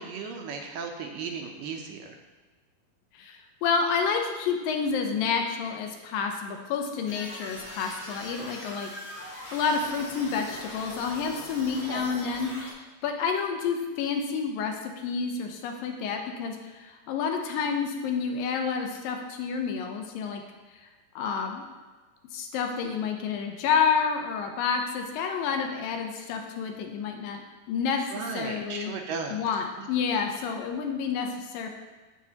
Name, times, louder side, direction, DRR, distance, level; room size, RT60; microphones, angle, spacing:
voice 1, 0.0-2.1 11.9-12.1 28.1-29.4 29.8-29.9, right 5 dB, 75° right, 3 dB, 2.2 m, -36 dB
voice 2, 3.2-8.9 9.5-12.5 13.0-20.4 21.2-21.6 22.3-27.4 27.7-28.0 28.3-28.9 29.3-31.7, left 6 dB, 80° left, 4 dB, 2.3 m, -29 dB
sound 1, 7.1-12.7, left 1 dB, 40° left, 1.3 m, -41 dB
14.0 x 5.3 x 2.8 m, 1.3 s
omnidirectional pair, 4.2 m